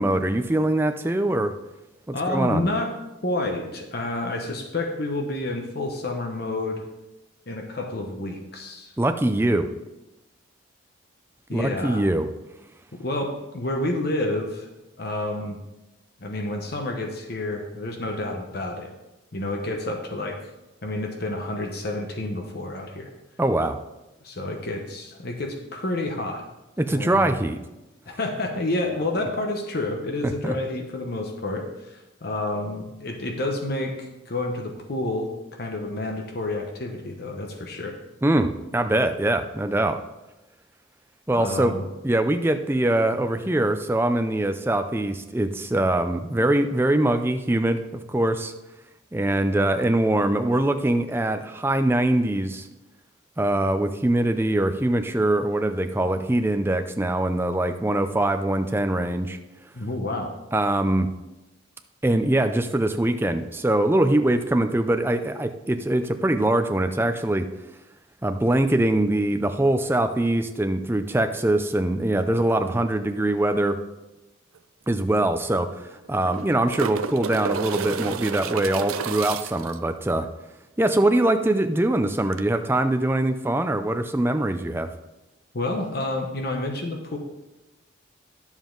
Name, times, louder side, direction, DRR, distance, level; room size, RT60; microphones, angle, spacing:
voice 1, 0.0-1.5 2.1-2.6 9.0-9.7 11.5-12.3 23.4-23.8 26.8-27.6 30.2-30.5 38.2-40.0 41.3-41.7 42.0-48.5 49.1-52.7 53.4-59.4 60.5-61.1 62.0-67.5 68.2-73.8 74.9-75.7 76.1-80.3 80.8-84.9, right 1 dB, 10° right, 7 dB, 0.4 m, -23 dB
voice 2, 2.1-2.9 3.2-6.9 7.5-8.9 11.5-12.1 12.9-14.7 15.0-15.6 16.2-18.9 19.3-20.4 20.8-23.1 24.2-26.4 26.9-27.3 28.1-38.0 41.3-41.8 59.7-60.4 85.5-87.2, left 2 dB, 50° left, 3 dB, 0.9 m, -29 dB
sound 1, 74.6-74.7 74.9-75.0 76.0-79.8 82.3-82.4, right 6 dB, 90° right, 0.5 m, -31 dB
11.0 x 7.2 x 3.8 m, 1.0 s
head